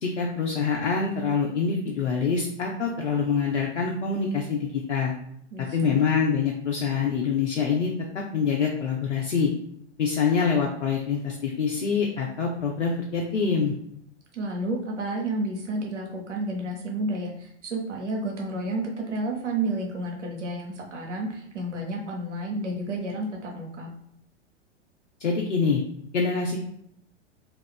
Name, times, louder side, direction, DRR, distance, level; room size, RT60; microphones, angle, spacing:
voice 1, 0.0-5.1 5.7-9.5 10.0-13.7 25.2-25.8 26.1-26.6, left 5 dB, 85° left, -1 dB, 0.5 m, -25 dB
voice 2, 5.5-6.0 14.3-23.9, right 2 dB, 80° right, 0 dB, 0.8 m, -31 dB
2.4 x 2.4 x 3.5 m, 0.71 s
figure-of-eight pair, 100°, 36 cm